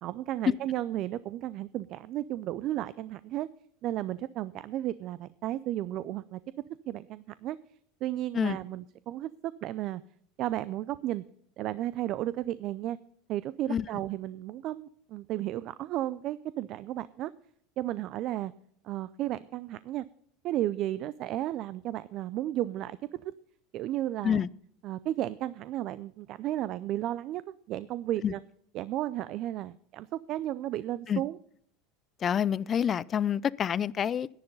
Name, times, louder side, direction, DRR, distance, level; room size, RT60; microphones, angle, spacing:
voice 1, 0.0-3.5 3.8-6.4 6.9-7.6 8.0-10.0 10.4-11.2 11.6-13.0 13.3-17.3 17.8-18.5 18.8-20.0 20.4-23.0 23.7-24.4 24.8-27.4 27.7-28.4 28.7-31.4, right 13 dB, 50° right, 0.4 m, -33 dB
voice 2, 32.2-34.3, left 8 dB, 30° left, 0.4 m, -27 dB
10.5 x 10.5 x 5.4 m
supercardioid pair, 120°, 0 cm